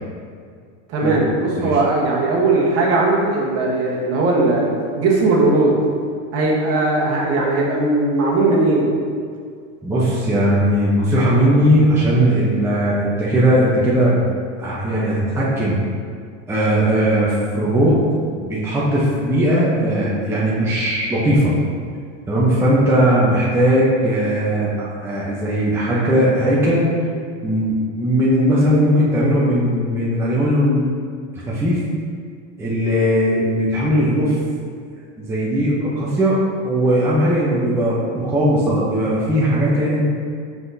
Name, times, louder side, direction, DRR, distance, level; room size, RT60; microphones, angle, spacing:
voice 1, 0.9-5.7 6.3-8.9, right 2 dB, 40° right, -3 dB, 1.3 m, -18 dB
voice 2, 9.8-14.2 14.6-15.8 16.5-18.0 18.4-21.5 22.3-26.9 27.4-30.9 31.5-31.8 32.6-34.4 35.2-36.4 36.6-40.0, equal, 5° right, -8 dB, 0.8 m, -18 dB
5.9 x 5.8 x 2.8 m, 2.1 s
supercardioid pair, 130°, 38 cm